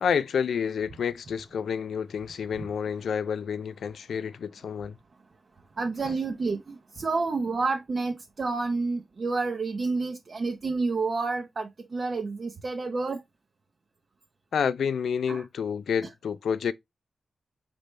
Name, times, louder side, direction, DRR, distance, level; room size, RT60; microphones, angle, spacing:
voice 1, 0.0-5.0 6.0-6.1 14.5-16.7, left 7 dB, 85° left, 0.3 m, -29 dB
voice 2, 5.8-13.2 15.3-15.4, right 3 dB, 45° right, 0.6 m, -29 dB
5.1 x 3.1 x 3.1 m
wide cardioid pair, 120°, 0 cm